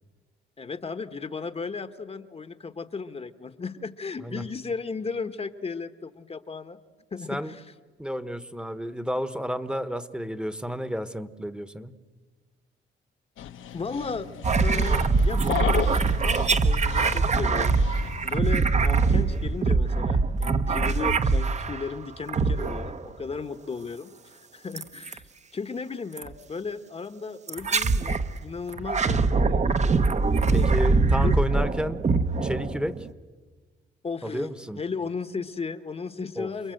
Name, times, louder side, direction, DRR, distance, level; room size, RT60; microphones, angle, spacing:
voice 1, 0.6-6.8 7.1-7.6 13.7-14.3 14.6-17.8 18.2-25.3 25.5-30.7 31.2-31.4 34.0-34.5 34.8-36.7, left 4 dB, 30° left, 10 dB, 1.1 m, -35 dB
voice 2, 8.0-11.9 30.5-32.0 32.4-33.0 34.2-34.8 36.4-36.5, equal, 5° right, 12 dB, 1.1 m, -31 dB
Dog, 13.4-18.4, left 10 dB, 80° left, 1.3 m, -35 dB
sound 1, 14.4-21.9 22.3-23.1 24.8-25.2 26.2-26.3 27.5-28.3 28.7-33.1, right 4 dB, 35° right, 1.0 m, -23 dB
29.0 x 21.0 x 7.8 m, 1.4 s
cardioid pair, 90°, 20 cm